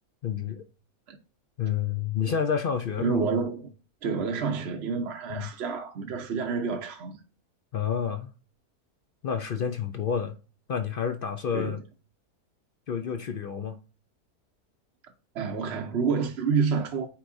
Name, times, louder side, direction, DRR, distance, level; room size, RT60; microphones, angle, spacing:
voice 1, 0.2-0.6 1.6-3.3 5.3-5.5 7.7-8.3 9.2-10.3 10.7-11.8 12.9-13.8, left 7 dB, 70° left, 0.5 m, -29 dB
voice 2, 3.0-3.7 4.0-7.2 11.5-11.8 15.3-17.1, right 5 dB, 55° right, 0.8 m, -28 dB
8.5 x 4.6 x 2.6 m
omnidirectional pair, 1.6 m